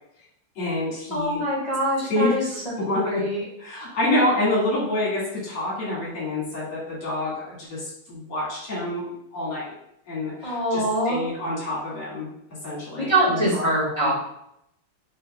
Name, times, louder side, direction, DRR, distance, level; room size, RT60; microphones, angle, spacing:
voice 1, 0.6-1.4 2.1-3.2 3.6-9.1 9.3-9.8 10.1-12.3 12.6-14.1, left 1 dB, 75° left, -6 dB, 2.8 m, -27 dB
voice 2, 1.1-2.4 3.0-3.4 10.4-11.2 13.0-14.2, right 1 dB, 45° left, -7 dB, 0.3 m, -23 dB
6.7 x 2.9 x 2.2 m, 0.78 s
omnidirectional pair, 2.4 m